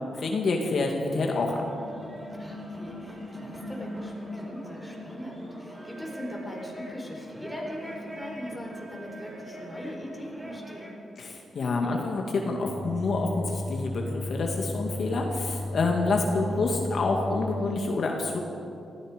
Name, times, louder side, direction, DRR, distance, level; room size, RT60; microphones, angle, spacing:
voice 1, 0.1-1.6 11.2-18.4, left 3 dB, 60° left, 1 dB, 1.9 m, -27 dB
sound 1, 1.1-11.0, equal, 20° right, 4.2 m, -41 dB
voice 2, 2.3-11.0, equal, 5° left, -2 dB, 4.6 m, -40 dB
sound 2, 12.6-17.6, left 1 dB, 35° right, 4.5 m, -34 dB
18.5 x 15.0 x 5.1 m, 2.6 s
cardioid pair, 80°, 0 cm